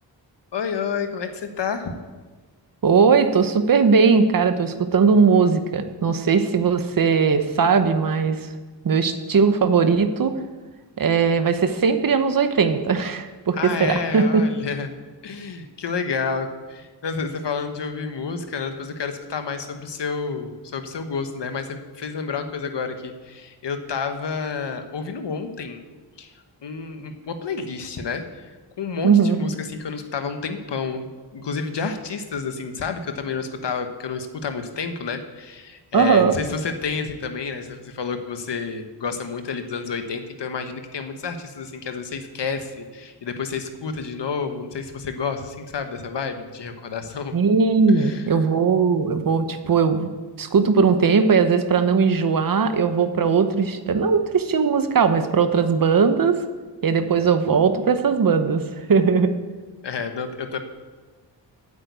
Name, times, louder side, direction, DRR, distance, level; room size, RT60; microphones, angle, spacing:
voice 1, 0.5-1.9 13.5-14.9 15.2-25.8 26.2-26.3 26.6-28.5 28.8-47.4 47.9-48.2 59.8-60.6, left 5 dB, 70° left, 7 dB, 1.2 m, -30 dB
voice 2, 2.8-8.4 8.8-10.3 11.0-14.4 29.0-29.4 35.9-36.3 47.3-50.1 50.4-56.4 56.8-58.6 58.9-59.3, right 5 dB, 50° right, 9 dB, 0.9 m, -19 dB
9.0 x 8.3 x 8.2 m, 1.3 s
wide cardioid pair, 170°, 43 cm